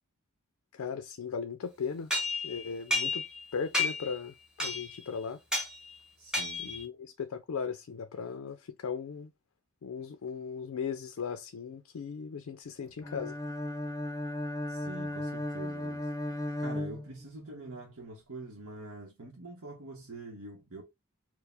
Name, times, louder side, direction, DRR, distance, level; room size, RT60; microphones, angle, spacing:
voice 1, 0.7-2.1 2.4-3.2 3.5-5.4 6.6-9.3 9.8-13.3, left 6 dB, 80° left, 0.4 m, -37 dB
sound 1, 2.1-3.4 3.7-4.2 4.6-5.0 5.5-5.7 6.3-6.8, left 2 dB, 5° right, 0.9 m, -31 dB
voice 2, 6.2-6.7 14.7-20.8, right 2 dB, 75° right, 0.8 m, -45 dB
Bowed string instrument, 13.0-17.6, left 1 dB, 15° left, 0.6 m, -36 dB
4.6 x 2.0 x 3.3 m
head